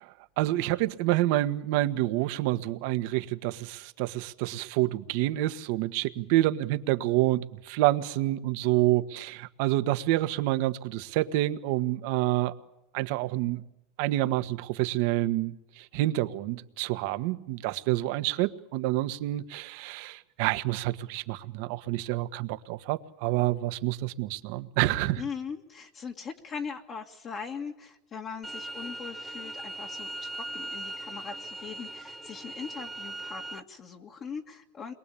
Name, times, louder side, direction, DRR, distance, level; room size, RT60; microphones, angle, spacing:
voice 1, 0.0-12.5 12.9-13.6 14.0-25.2, right 16 dB, 65° right, 1.5 m, -28 dB
voice 2, 25.2-34.9, left 6 dB, 35° left, 2.0 m, -40 dB
sound 1, 28.4-33.6, right 1 dB, 5° right, 1.0 m, -39 dB
29.0 x 22.5 x 8.6 m
supercardioid pair, 130°, 0 cm